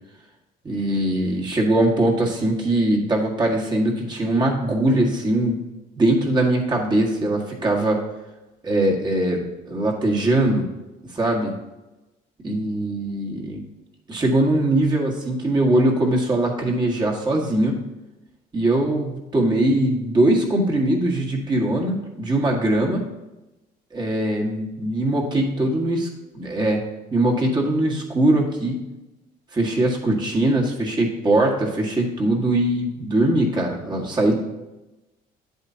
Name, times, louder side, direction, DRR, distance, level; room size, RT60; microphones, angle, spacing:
voice 1, 0.6-5.6 6.0-8.0 8.6-10.7 11.1-11.6 12.4-13.6 14.1-17.8 18.5-23.0 23.9-26.8 27.1-28.8 29.5-34.3, right 1 dB, 25° right, -1 dB, 1.8 m, -21 dB
9.8 x 8.1 x 2.8 m, 1.0 s
cardioid pair, 110°, 17 cm